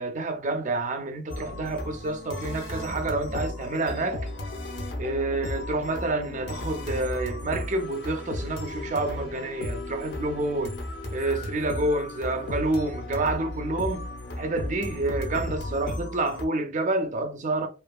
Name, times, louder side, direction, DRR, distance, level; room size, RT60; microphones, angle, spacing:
voice 1, 0.0-4.3 5.0-10.8 11.1-14.1 14.4-17.7, right 2 dB, 40° right, 0.5 m, -28 dB
sound 1, 1.3-16.4, left 1 dB, 60° left, 0.6 m, -35 dB
2.8 x 2.4 x 2.2 m
head